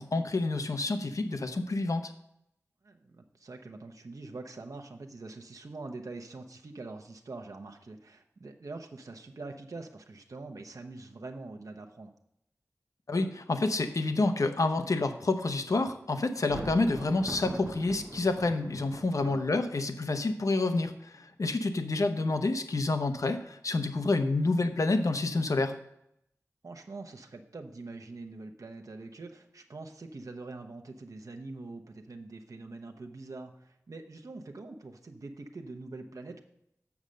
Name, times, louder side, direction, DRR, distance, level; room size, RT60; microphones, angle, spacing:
voice 1, 0.0-2.1 13.1-25.8, left 3 dB, 70° left, 8 dB, 0.8 m, -28 dB
voice 2, 2.8-12.1 19.2-19.4 26.6-36.4, right 3 dB, 75° right, 4 dB, 0.8 m, -44 dB
Thunder, 16.4-19.7, right 1 dB, 25° right, 0.8 m, -41 dB
7.2 x 6.5 x 6.3 m, 0.78 s
wide cardioid pair, 60°, 6 cm